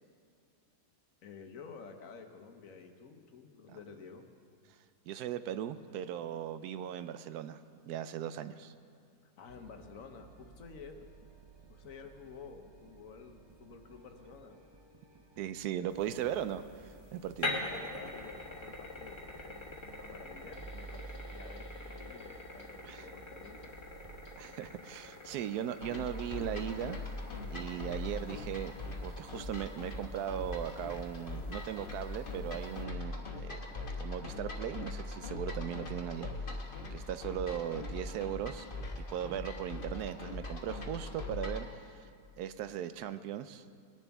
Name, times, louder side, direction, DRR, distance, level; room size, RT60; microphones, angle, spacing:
voice 1, 1.2-4.3 9.2-11.0 11.7-14.6 17.5-23.7, left 5 dB, 60° left, 5 dB, 1.2 m, -51 dB
voice 2, 5.1-8.7 15.4-17.6 22.8-23.0 24.4-27.1 27.5-28.7 29.0-33.6 34.0-36.6 36.9-38.7 39.1-41.7 42.4-43.7, right 10 dB, 80° right, 12 dB, 1.1 m, -38 dB
sound 1, 9.5-24.4, right 3 dB, 40° right, 0.3 m, -54 dB
sound 2, 15.9-32.8, left 2 dB, 20° left, 1.3 m, -45 dB
sound 3, 25.8-41.7, left 2 dB, 35° left, 1.3 m, -41 dB
20.0 x 10.5 x 3.5 m, 2.3 s
omnidirectional pair, 1.7 m